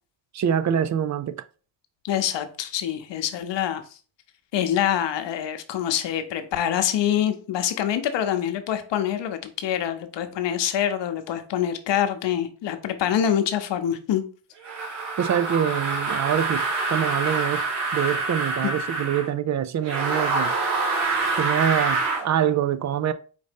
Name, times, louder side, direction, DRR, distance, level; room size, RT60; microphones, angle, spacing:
voice 1, 0.3-1.4 15.2-17.6 17.9-20.5 21.4-23.1, right 9 dB, 40° right, 0.4 m, -25 dB
voice 2, 2.0-3.8 4.5-14.2 18.6-18.7, left 10 dB, 60° left, 0.9 m, -25 dB
sound 1, 14.6-19.3 19.8-22.3, right 3 dB, 90° right, 1.8 m, -26 dB
4.9 x 2.7 x 3.5 m
supercardioid pair, 70°, 49 cm